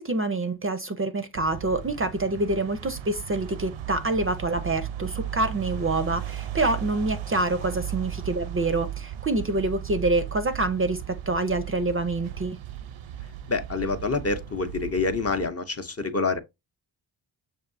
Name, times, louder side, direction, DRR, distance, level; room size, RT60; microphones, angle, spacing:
voice 1, 0.0-12.6, right 2 dB, 30° right, 0.5 m, -26 dB
sound 1, 1.3-15.5, right 11 dB, 80° right, 0.6 m, -36 dB
voice 2, 13.5-16.4, left 4 dB, 30° left, 0.6 m, -27 dB
6.5 x 2.7 x 2.5 m
wide cardioid pair, 85°, 46 cm